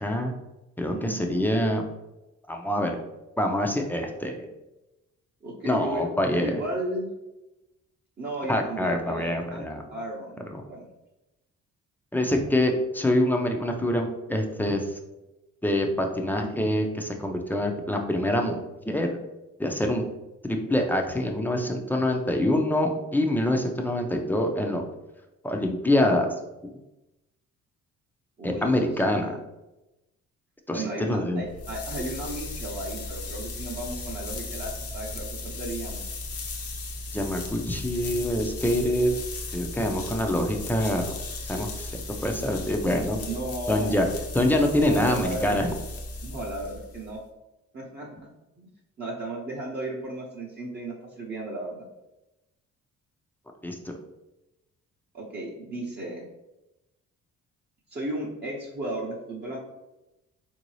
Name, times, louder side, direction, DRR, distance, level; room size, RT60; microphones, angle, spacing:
voice 1, 0.0-0.3 0.8-1.8 2.5-3.0 3.4-4.5 5.6-6.6 8.5-9.8 12.1-14.9 15.6-19.1 19.6-20.0 20.4-24.8 25.4-26.3 28.4-29.4 30.7-31.4 37.1-39.1 39.5-41.1 41.5-41.9 42.2-43.2 43.7-44.1 44.3-45.7 53.6-53.9, left 1 dB, 5° left, 3 dB, 0.5 m, -25 dB
voice 2, 0.9-1.4 5.4-7.1 8.2-10.9 28.4-29.4 30.7-36.0 43.3-44.1 44.9-45.7 46.2-47.2 47.7-48.1 48.6-48.7 49.0-51.8 55.1-56.3 57.9-59.6, right 1 dB, 35° right, -4 dB, 0.7 m, -35 dB
sound 1, 31.4-47.2, left 2 dB, 50° left, 0.7 m, -36 dB
3.8 x 2.7 x 3.1 m, 0.97 s
cardioid pair, 90°, 30 cm